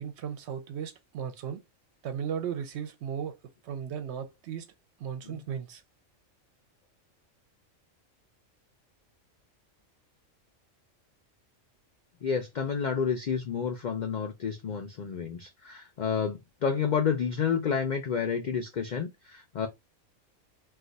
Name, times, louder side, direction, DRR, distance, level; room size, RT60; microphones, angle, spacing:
voice 1, 0.0-1.6 2.0-3.4 3.6-4.7 5.0-5.8, right 8 dB, 65° right, 0.8 m, -36 dB
voice 2, 12.2-19.7, left 6 dB, 90° left, 0.4 m, -30 dB
2.4 x 2.4 x 3.8 m
omnidirectional pair, 1.4 m